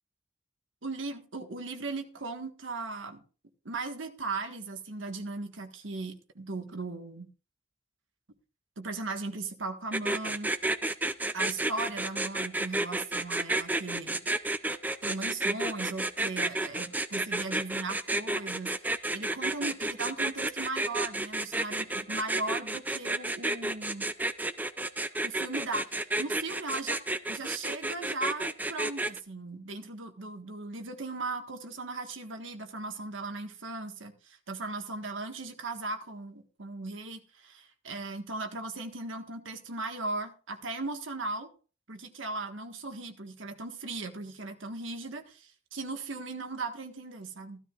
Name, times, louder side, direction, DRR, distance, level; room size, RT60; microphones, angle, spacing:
voice 1, 0.8-3.2 3.6-7.3 8.8-10.5 11.3-14.2 15.0-18.7 19.1-24.1 25.2-41.5 41.9-47.6, right 3 dB, 85° right, 1.6 m, -37 dB
sound 1, 9.9-29.2, right 2 dB, 10° right, 0.5 m, -31 dB
15.0 x 13.0 x 2.5 m
head